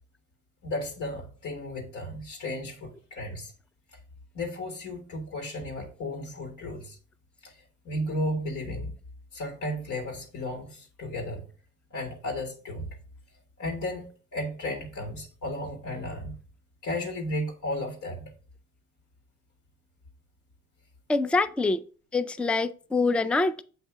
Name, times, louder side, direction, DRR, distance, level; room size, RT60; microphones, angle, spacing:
voice 1, 0.6-3.5 4.3-7.0 7.4-7.6 7.8-8.9 9.3-11.4 11.9-12.9 13.6-16.4 16.8-18.3, left 1 dB, 75° left, 1.4 m, -34 dB
voice 2, 21.1-21.8 22.1-23.6, left 3 dB, 5° left, 0.3 m, -25 dB
7.8 x 2.8 x 4.6 m
cardioid pair, 90°, 30 cm